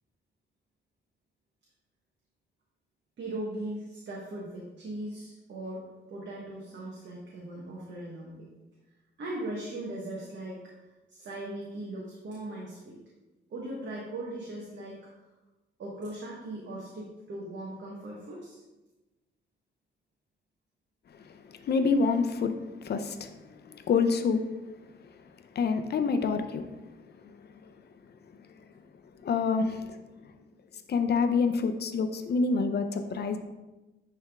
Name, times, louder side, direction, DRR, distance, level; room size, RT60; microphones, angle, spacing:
voice 1, 3.2-5.8 6.1-8.5 9.2-10.6 11.1-13.0 13.5-15.0 15.8-18.6, right 1 dB, 65° right, -4 dB, 1.3 m, -39 dB
voice 2, 21.5-22.5 22.8-23.3 23.6-24.4 25.6-26.6 29.2-29.8 30.9-33.4, left 5 dB, 60° left, 7 dB, 0.6 m, -27 dB
9.5 x 3.5 x 3.6 m, 1.1 s
wide cardioid pair, 145°, 19 cm